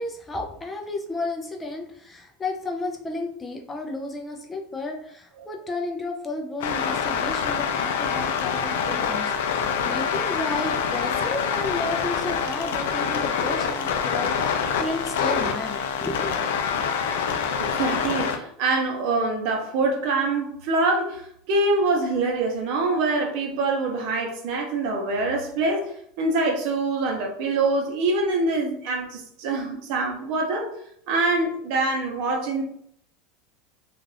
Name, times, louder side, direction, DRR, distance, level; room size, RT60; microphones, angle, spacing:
voice 1, 0.0-16.4, left 2 dB, 15° left, 2 dB, 0.4 m, -32 dB
sound 1, 6.6-18.4, left 6 dB, 90° left, 0.4 m, -26 dB
voice 2, 17.6-21.2 21.5-30.7 31.1-32.6, right 3 dB, 60° right, 2 dB, 0.8 m, -25 dB
2.4 x 2.4 x 3.3 m, 0.68 s
supercardioid pair, 140°, 0 cm